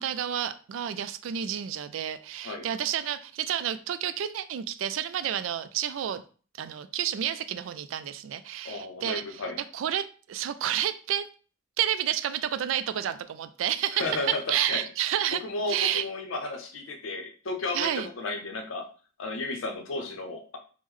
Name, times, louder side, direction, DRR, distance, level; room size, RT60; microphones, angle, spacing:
voice 1, 0.0-6.2 6.6-9.4 9.7-11.3 11.8-15.4 15.7-16.1 17.7-18.1, right 10 dB, 85° right, 11 dB, 0.3 m, -30 dB
voice 2, 8.6-9.6 13.9-14.8 15.4-18.9 19.2-20.6, left 2 dB, 85° left, 5 dB, 0.6 m, -33 dB
3.6 x 2.0 x 3.1 m, 0.39 s
head